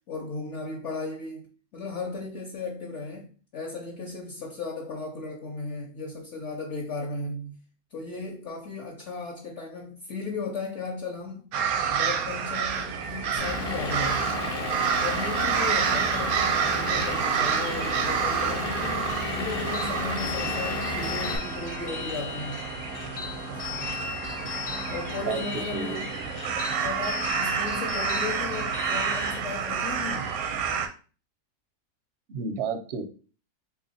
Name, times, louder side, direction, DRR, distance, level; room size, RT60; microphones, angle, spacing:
voice 1, 0.1-7.6 7.9-11.6 11.9-14.3 15.0-22.7 23.7-24.0 24.9-26.1 26.6-30.4, left 3 dB, 60° left, 0.9 m, -36 dB
sound 1, 11.5-30.9, right 7 dB, 80° right, 1.0 m, -29 dB
Vehicle / Engine, 13.4-21.4, left 2 dB, 40° left, 0.6 m, -32 dB
sound 2, 19.1-29.4, left 5 dB, 80° left, 0.3 m, -37 dB
voice 2, 25.3-26.2 32.3-33.1, right 5 dB, 65° right, 0.7 m, -32 dB
3.0 x 2.5 x 4.0 m
omnidirectional pair, 1.5 m